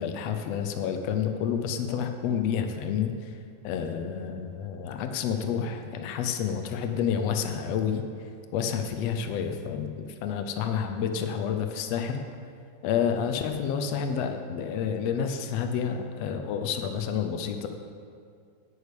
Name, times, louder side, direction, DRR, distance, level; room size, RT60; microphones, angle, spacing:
voice 1, 0.0-3.3 3.6-8.0 8.5-12.2 12.8-17.7, left 7 dB, 80° left, 6 dB, 1.5 m, -29 dB
9.4 x 6.5 x 8.5 m, 2.3 s
omnidirectional pair, 3.7 m